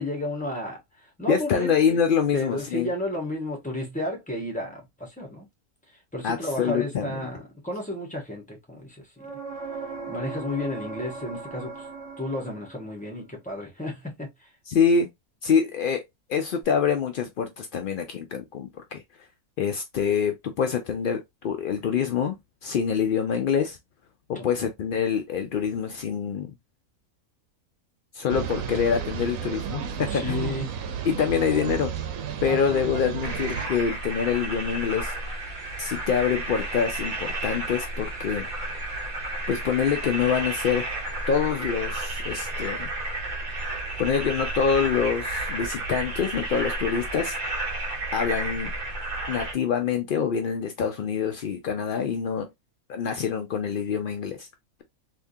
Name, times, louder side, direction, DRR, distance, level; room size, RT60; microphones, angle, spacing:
voice 1, 0.0-1.7 2.3-5.5 6.1-9.1 10.1-11.9 12.2-14.5 24.3-24.4 30.0-30.8 32.5-32.9, left 1 dB, 5° left, 1.3 m, -32 dB
voice 2, 1.3-2.9 6.2-7.2 14.7-15.1 15.4-16.0 16.3-19.0 19.6-22.4 22.6-23.8 24.3-26.5 28.1-30.5 31.0-31.9 32.4-35.1 35.8-38.5 39.5-41.0 41.3-42.9 44.0-47.4 48.1-48.7 49.3-52.5 52.9-54.5, left 7 dB, 75° left, 0.4 m, -25 dB
sound 1, 9.2-13.0 16.6-16.7, right 4 dB, 55° right, 1.3 m, -38 dB
sound 2, 28.3-33.7, right 8 dB, 70° right, 1.0 m, -32 dB
sound 3, 33.2-49.5, right 2 dB, 40° right, 0.9 m, -32 dB
3.5 x 2.7 x 2.7 m
omnidirectional pair, 1.5 m